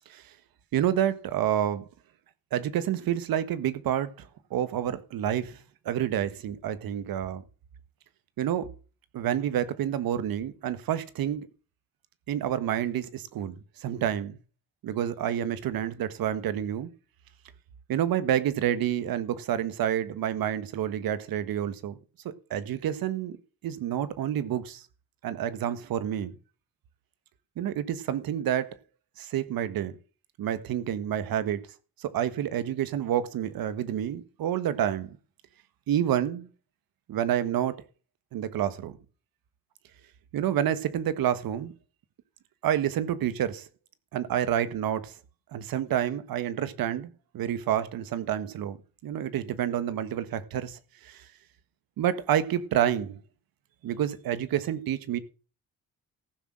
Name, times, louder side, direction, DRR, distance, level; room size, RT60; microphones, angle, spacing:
voice 1, 0.7-1.9 2.5-5.6 5.8-7.4 8.4-8.7 9.1-11.5 12.3-14.4 14.8-16.9 17.9-22.0 22.2-23.4 23.6-24.8 25.2-26.4 27.6-28.7 29.2-29.9 30.4-31.6 32.0-35.2 35.9-36.5 37.1-37.8 38.3-39.0 40.3-41.7 42.6-43.7 44.1-45.1 45.5-48.8 49.0-51.3 52.0-53.2 53.8-55.2, right 10 dB, 75° right, 1.6 m, -29 dB
15.0 x 6.4 x 7.5 m
cardioid pair, 85°, 36 cm